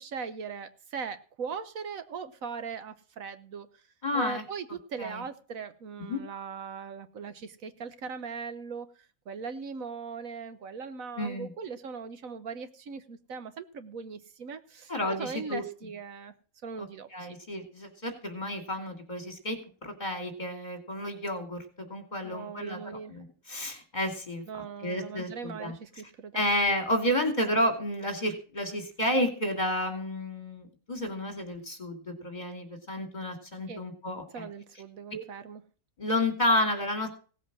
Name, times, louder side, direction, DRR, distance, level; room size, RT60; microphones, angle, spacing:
voice 1, 0.0-3.7 4.1-8.9 9.3-16.3 16.6-17.3 22.2-23.1 24.5-26.5 33.7-33.8 34.3-35.6, right 5 dB, 75° right, 11 dB, 1.4 m, -39 dB
voice 2, 4.0-4.4 5.0-5.2 6.0-6.2 11.2-11.5 14.9-15.6 16.8-16.9 17.1-25.7 26.3-34.5 35.1-35.2 36.0-37.1, left 1 dB, 30° left, 5 dB, 2.8 m, -31 dB
17.0 x 8.2 x 6.2 m, 0.39 s
omnidirectional pair, 1.5 m